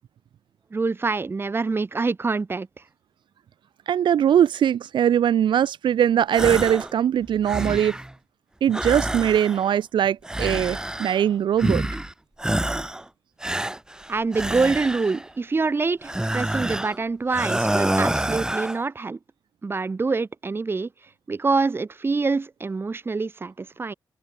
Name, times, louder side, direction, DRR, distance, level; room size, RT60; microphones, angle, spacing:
voice 1, 0.7-2.7 14.1-19.2 19.6-20.9 21.3-23.9, right 4 dB, 30° right, 2.3 m, -25 dB
voice 2, 3.9-8.0 8.6-11.9, right 9 dB, 80° right, 0.7 m, -21 dB
sound 1, 6.3-6.9 7.3-8.1 8.7-9.8 10.2-11.3 11.6-12.1 12.4-13.0 13.4-15.3 16.0-17.0 17.3-18.8, right 1 dB, 10° right, 6.5 m, -27 dB
wide cardioid pair, 145°, 8 cm